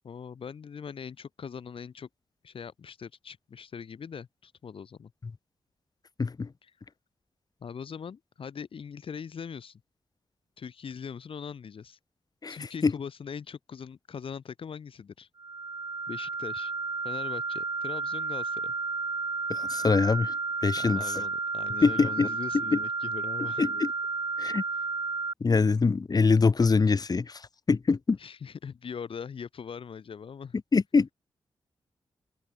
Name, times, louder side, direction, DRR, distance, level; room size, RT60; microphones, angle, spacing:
voice 1, 0.0-2.1 2.4-5.1 6.6-6.7 7.6-9.8 10.6-12.0 12.5-15.3 16.1-16.7 17.0-18.7 20.8-23.6 24.7-24.9 28.2-30.6, left 6 dB, 70° left, 3.6 m, -41 dB
voice 2, 12.4-12.9 19.5-20.3 20.6-21.0 21.8-22.3 23.6-23.9 24.4-24.6 25.4-27.4 27.7-28.2 30.7-31.1, left 4 dB, 40° left, 2.2 m, -24 dB
sound 1, 15.4-25.3, right 4 dB, 40° right, 1.8 m, -32 dB
cardioid pair, 85°, 10 cm